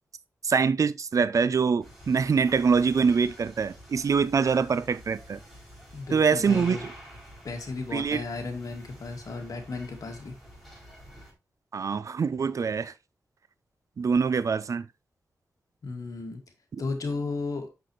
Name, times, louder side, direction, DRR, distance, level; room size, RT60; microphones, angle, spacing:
voice 1, 0.4-5.4 6.1-6.9 7.9-8.2 11.7-12.9 14.0-14.9, right 5 dB, 60° right, 0.5 m, -24 dB
sound 1, 1.8-11.3, equal, ahead, 4.9 m, -48 dB
voice 2, 5.9-6.9 7.4-10.3 15.8-16.4 16.8-17.7, left 3 dB, 65° left, 2.1 m, -34 dB
6.8 x 5.9 x 3.1 m
wide cardioid pair, 80°, 6 cm